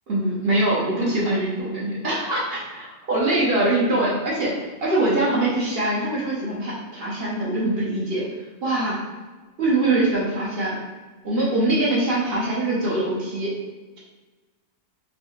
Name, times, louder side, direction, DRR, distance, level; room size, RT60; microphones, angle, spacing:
voice 1, 0.1-8.2 8.6-9.0 9.6-10.8 11.2-13.5, right 2 dB, 50° right, -5 dB, 0.9 m, -23 dB
3.2 x 2.7 x 2.8 m, 1.3 s
omnidirectional pair, 1.4 m